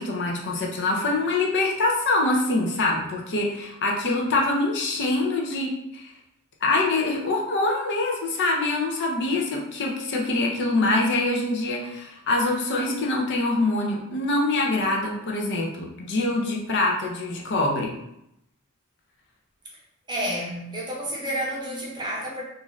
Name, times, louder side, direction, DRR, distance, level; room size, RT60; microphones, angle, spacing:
voice 1, 0.0-6.1 6.6-17.9, left 2 dB, 55° left, -1 dB, 0.5 m, -24 dB
voice 2, 20.1-22.4, equal, 20° right, -4 dB, 0.7 m, -30 dB
2.5 x 2.5 x 3.1 m, 0.81 s
head